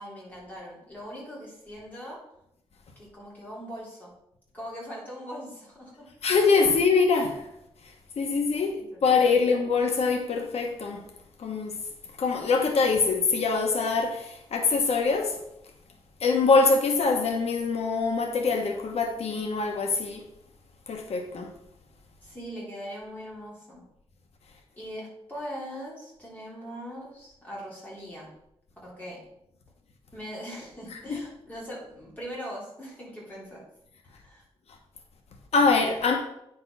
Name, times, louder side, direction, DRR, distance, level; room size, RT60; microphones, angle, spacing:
voice 1, 0.0-2.2 3.0-4.1 4.5-6.1 8.7-9.4 22.2-23.8 24.8-28.3 28.8-29.2 30.1-33.6 34.1-34.4, equal, 15° left, -5 dB, 3.7 m, -41 dB
voice 2, 6.2-7.4 8.2-8.8 9.0-11.0 11.4-11.8 12.2-15.4 16.2-20.2 20.9-21.5 35.5-36.2, left 4 dB, 85° left, 3 dB, 1.2 m, -24 dB
9.4 x 5.3 x 5.7 m, 0.80 s
wide cardioid pair, 170°, 10 cm